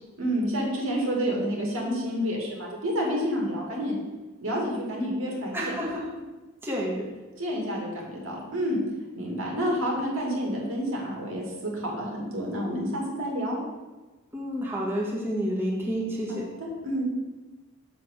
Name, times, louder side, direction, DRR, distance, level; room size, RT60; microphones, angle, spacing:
voice 1, 0.2-4.0 4.4-5.8 7.4-8.8 9.1-13.6 16.3-17.0, equal, 70° right, -2 dB, 2.3 m, -29 dB
voice 2, 5.5-6.0 6.6-7.0 14.3-16.4, equal, 10° right, -5 dB, 1.5 m, -29 dB
6.6 x 6.1 x 6.6 m, 1.2 s
head